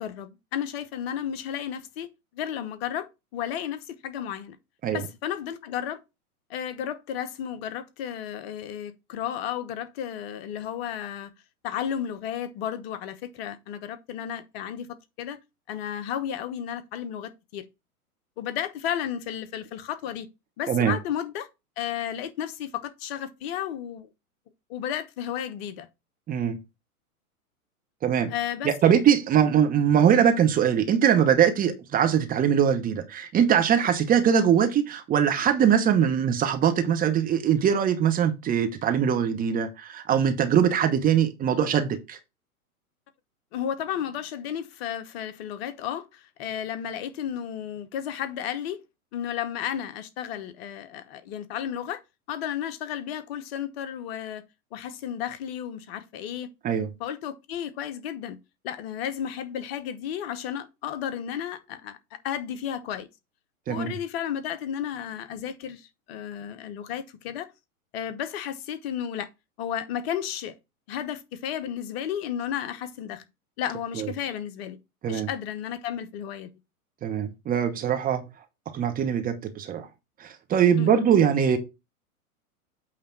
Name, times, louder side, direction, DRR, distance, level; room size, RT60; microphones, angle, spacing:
voice 1, 0.0-2.1 2.3-4.6 4.9-6.0 6.5-11.3 11.6-15.4 15.7-17.6 18.4-20.3 20.6-21.5 21.8-24.1 24.7-25.9 28.3-29.0 43.5-48.8 49.1-52.0 52.3-54.4 54.7-56.5 57.0-58.4 58.6-63.1 63.7-67.5 67.9-69.3 69.6-70.6 70.9-73.2 73.6-74.8 75.0-76.5 80.8-81.1, left 9 dB, 40° left, 1.0 m, -33 dB
voice 2, 26.3-26.6 28.0-28.3 28.6-42.2 56.6-56.9 63.7-63.9 74.0-74.1 75.0-75.3 77.0-78.2 78.7-79.9 80.2-81.6, right 8 dB, 20° right, 0.9 m, -22 dB
8.4 x 3.3 x 5.9 m
figure-of-eight pair, 110°, 45 cm